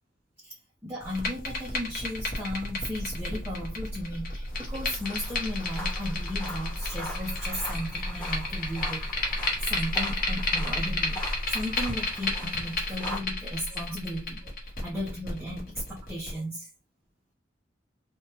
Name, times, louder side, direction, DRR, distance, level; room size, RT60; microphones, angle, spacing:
voice 1, 0.4-16.7, equal, 10° right, 0.8 m, -36 dB
sound 1, 1.0-16.3, left 2 dB, 50° left, 0.9 m, -32 dB
sound 2, 4.5-13.2, equal, 5° left, 1.2 m, -41 dB
3.4 x 2.2 x 2.9 m
head